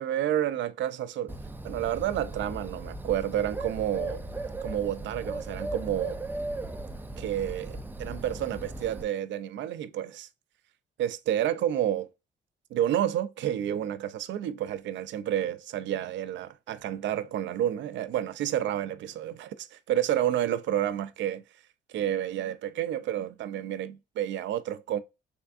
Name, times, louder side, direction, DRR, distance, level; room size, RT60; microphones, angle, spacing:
voice 1, 0.0-1.3 1.6-4.2 4.6-6.2 7.2-10.3 11.0-12.1 12.7-21.4 21.9-25.0, right 11 dB, 70° right, 0.4 m, -30 dB
Bird, 1.3-9.0, right 2 dB, 10° right, 0.4 m, -37 dB
3.5 x 3.3 x 2.4 m
cardioid pair, 90°, 20 cm